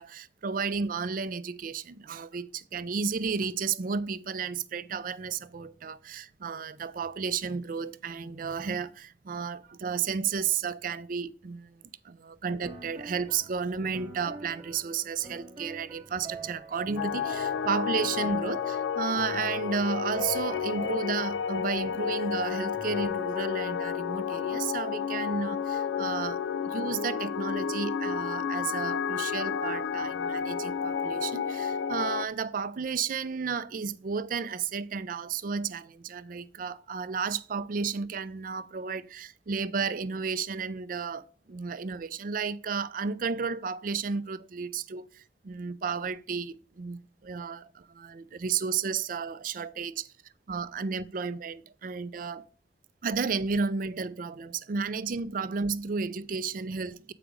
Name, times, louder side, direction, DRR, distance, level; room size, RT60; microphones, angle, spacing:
voice 1, 0.0-50.1 50.5-52.5 53.0-57.1, right 5 dB, 50° right, 0.4 m, -33 dB
sound 1, 12.6-23.1, right 3 dB, 25° right, 0.9 m, -45 dB
sound 2, 17.0-32.2, left 7 dB, 85° left, 0.3 m, -31 dB
8.1 x 4.9 x 5.0 m
head